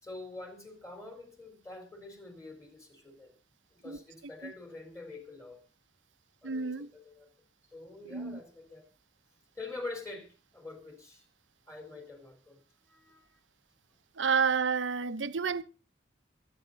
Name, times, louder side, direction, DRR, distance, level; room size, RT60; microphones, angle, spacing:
voice 1, 0.0-3.3 3.8-5.6 6.4-7.3 7.7-8.8 9.6-11.3 11.7-12.6 12.9-13.4, left 3 dB, 15° left, 4.0 m, -45 dB
voice 2, 6.4-6.9 8.1-8.4 14.2-15.6, right 6 dB, 80° right, 0.8 m, -30 dB
24.0 x 9.4 x 4.0 m
head